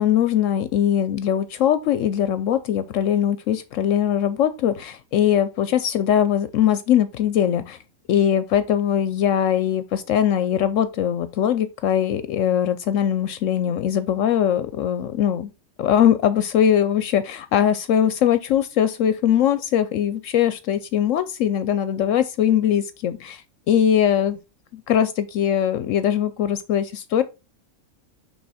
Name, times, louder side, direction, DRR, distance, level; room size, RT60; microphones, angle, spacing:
voice 1, 0.0-7.8 8.1-15.5 15.8-23.4 23.7-24.4 24.7-27.2, left 9 dB, 75° left, 0.9 m, -21 dB
6.1 x 3.5 x 5.5 m
omnidirectional pair, 1.4 m